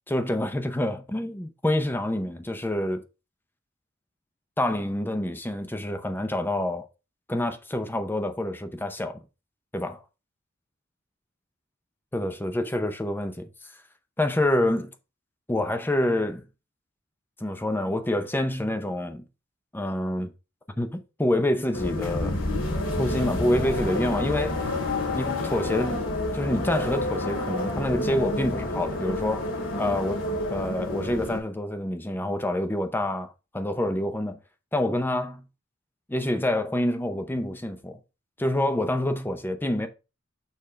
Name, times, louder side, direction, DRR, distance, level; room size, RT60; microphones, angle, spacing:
voice 1, 0.1-3.0 4.6-6.9 7.3-9.2 9.7-10.0 12.1-13.4 14.2-14.9 15.5-16.5 17.4-19.2 19.7-20.3 20.8-22.4 23.0-24.6 25.1-26.0 26.3-29.5 29.8-30.2 30.5-34.4 34.7-35.4 36.1-38.0 38.4-39.9, left 1 dB, 10° left, 0.6 m, -27 dB
sound 1, 21.7-31.4, left 2 dB, 75° left, 2.4 m, -29 dB
6.7 x 3.6 x 4.9 m
head